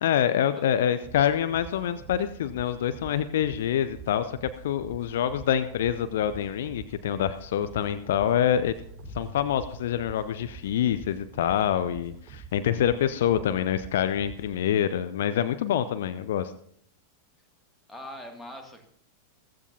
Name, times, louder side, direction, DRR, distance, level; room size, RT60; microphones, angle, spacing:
voice 1, 0.0-8.7 9.1-16.5, left 10 dB, 60° left, 12 dB, 0.6 m, -26 dB
sound 1, 1.0-14.6, right 7 dB, 35° right, 4.8 m, -46 dB
sound 2, 8.6-10.4, left 1 dB, 85° left, 5.4 m, -47 dB
voice 2, 17.9-18.9, left 1 dB, 5° left, 2 dB, 2.4 m, -41 dB
15.5 x 15.0 x 2.8 m, 0.65 s
figure-of-eight pair, 90°, 0 cm